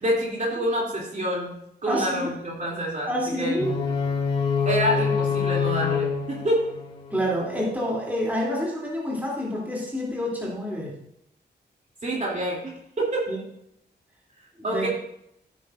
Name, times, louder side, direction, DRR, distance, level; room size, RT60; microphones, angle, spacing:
voice 1, 0.0-1.5 1.8-3.6 4.6-6.7 12.0-12.6 13.0-13.3 14.6-14.9, right 1 dB, 45° right, -3 dB, 3.0 m, -27 dB
voice 2, 1.9-2.3 3.0-3.7 7.1-11.0 13.3-13.4 14.6-14.9, equal, 10° right, -5 dB, 2.9 m, -28 dB
sound 1, 3.6-7.6, left 6 dB, 30° left, 3.6 m, -26 dB
15.5 x 9.2 x 2.6 m, 0.76 s
wide cardioid pair, 180°, 18 cm